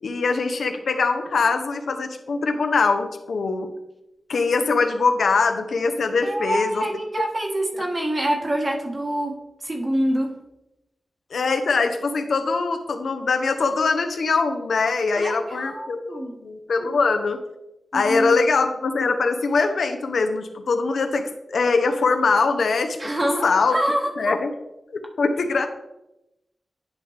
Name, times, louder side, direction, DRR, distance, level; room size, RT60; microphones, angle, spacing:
voice 1, 0.0-3.7 4.3-6.9 11.3-17.4 17.9-23.0 23.2-23.8 24.2-24.5 24.9-25.7, left 4 dB, 90° left, 6 dB, 0.8 m, -22 dB
voice 2, 6.2-10.4 15.1-16.3 17.9-18.4 23.0-24.3, right 1 dB, 30° right, 1 dB, 1.4 m, -26 dB
10.5 x 5.0 x 3.3 m, 0.90 s
wide cardioid pair, 110°, 0 cm